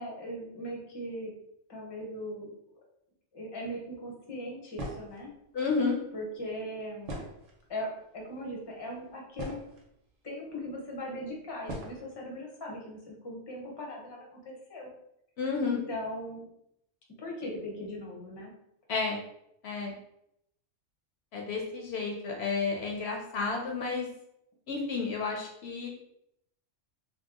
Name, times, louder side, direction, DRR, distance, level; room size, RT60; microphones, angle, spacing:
voice 1, 0.0-1.4 1.7-2.5 3.3-5.4 6.1-7.3 7.7-9.6 10.2-14.9 15.7-16.5 17.2-18.5, equal, 25° left, -1 dB, 0.6 m, -39 dB
sound 1, 4.8-5.2 7.0-7.8 8.6-8.7 9.1-9.9 10.8-10.9 11.7-12.0, right 1 dB, 85° right, 1.0 m, -40 dB
voice 2, 5.5-6.0 15.4-15.8 18.9-19.2 19.6-19.9 21.3-24.1 24.7-25.9, left 4 dB, 65° left, 0 dB, 0.8 m, -31 dB
2.8 x 2.1 x 3.6 m, 0.77 s
omnidirectional pair, 1.2 m